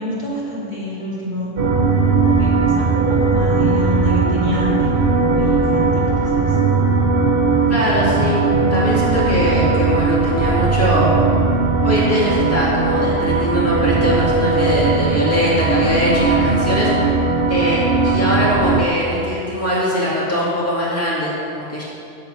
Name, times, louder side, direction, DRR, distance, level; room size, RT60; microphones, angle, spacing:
voice 1, 0.0-1.5 2.2-6.6 7.5-8.0 15.7-16.0 18.3-18.5, equal, 45° left, -9 dB, 2.3 m, -27 dB
sound 1, 1.6-18.9, right 4 dB, 60° right, 0.9 m, -18 dB
voice 2, 7.7-8.4 8.7-11.1 11.8-17.0 17.5-21.8, left 1 dB, 15° left, -8 dB, 2.3 m, -21 dB
9.0 x 7.7 x 5.5 m, 2.7 s
omnidirectional pair, 1.1 m